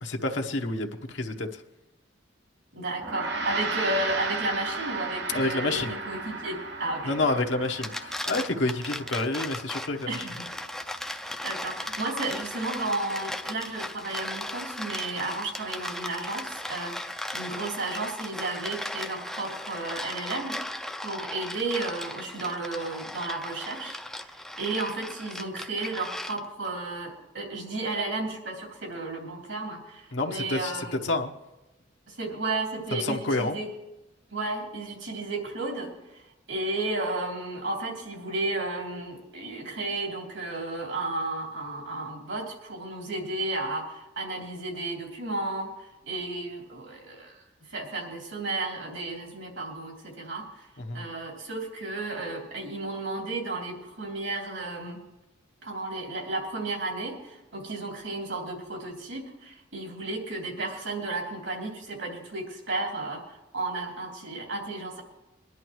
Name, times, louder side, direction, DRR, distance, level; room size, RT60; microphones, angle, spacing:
voice 1, 0.0-1.6 5.3-6.0 7.0-10.3 30.1-31.3 32.9-33.6 50.8-51.0, left 2 dB, 75° left, 3 dB, 1.0 m, -29 dB
voice 2, 2.7-7.1 10.1-10.3 11.2-20.6 21.0-31.0 32.1-33.7 34.3-36.2 36.5-47.4 47.7-50.7 50.9-55.0 55.6-65.0, right 2 dB, 80° right, 0 dB, 3.2 m, -33 dB
Gong, 3.0-12.6, right 3 dB, 60° right, 1.2 m, -36 dB
sound 1, 7.6-26.7, left 1 dB, ahead, 0.4 m, -37 dB
23.0 x 11.0 x 3.1 m, 0.99 s
head